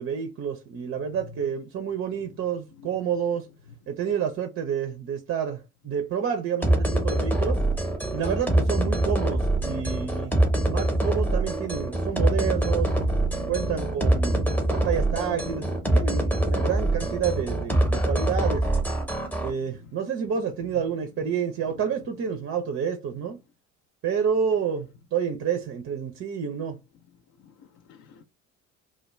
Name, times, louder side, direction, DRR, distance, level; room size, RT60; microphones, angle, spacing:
voice 1, 0.0-3.5 3.9-7.6 8.1-12.9 13.5-15.7 15.9-18.7 19.4-23.4 24.0-26.8, right 7 dB, 35° right, 0.5 m, -29 dB
sound 1, 6.6-19.5, right 1 dB, 5° left, 0.9 m, -24 dB
voice 2, 13.0-13.8 14.1-14.7 15.1-15.5 27.4-28.2, left 6 dB, 45° left, 0.5 m, -43 dB
2.2 x 2.2 x 3.0 m
figure-of-eight pair, 55°, 42 cm